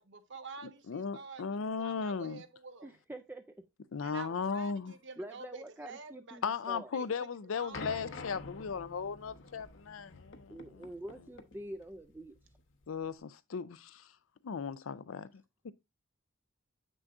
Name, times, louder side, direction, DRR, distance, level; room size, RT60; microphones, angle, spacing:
voice 1, 0.0-2.9 4.0-6.4 6.7-7.1 7.5-8.1, right 4 dB, 60° right, 1.0 m, -48 dB
voice 2, 0.9-2.4 3.9-4.9 6.4-10.9 12.9-14.1 14.4-15.3 15.6-15.7, left 5 dB, 80° left, 0.5 m, -37 dB
voice 3, 2.8-3.6 5.2-6.9 10.5-12.4, right 1 dB, 10° right, 0.4 m, -46 dB
sound 1, 7.7-13.1, left 3 dB, 65° left, 0.9 m, -48 dB
7.8 x 6.2 x 2.5 m
head